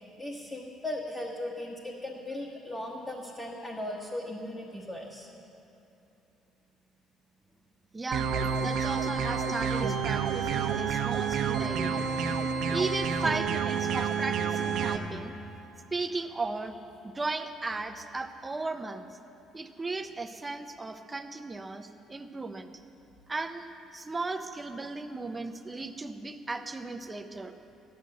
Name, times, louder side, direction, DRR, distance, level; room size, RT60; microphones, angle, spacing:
voice 1, 0.2-5.3, left 1 dB, 15° left, -2 dB, 1.3 m, -37 dB
voice 2, 7.9-8.3 8.6-12.0 12.7-15.3 15.9-16.8 17.1-19.1 19.5-22.7 23.3-27.5, right 3 dB, 15° right, 7 dB, 0.6 m, -35 dB
sound 1, 8.1-15.0, right 6 dB, 60° right, 1.1 m, -29 dB
14.5 x 11.0 x 7.7 m, 2.9 s
cardioid pair, 155°, 0 cm